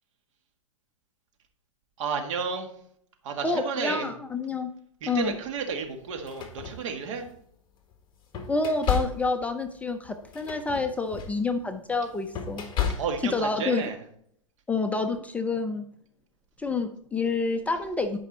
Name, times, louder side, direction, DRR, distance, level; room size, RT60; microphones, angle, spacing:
voice 1, 2.0-2.7 3.2-4.1 5.0-7.3 13.0-14.0, right 5 dB, 60° right, 5 dB, 1.8 m, -31 dB
voice 2, 3.4-4.7 5.1-5.3 8.5-12.7 13.3-13.9 14.7-15.8 16.6-18.2, left 3 dB, 10° left, 6 dB, 0.5 m, -28 dB
sound 1, 5.2-5.4 6.1-7.4 7.9-13.4, left 7 dB, 25° left, 1.6 m, -33 dB
11.5 x 5.3 x 4.0 m, 0.66 s
hypercardioid pair, 130°, 18 cm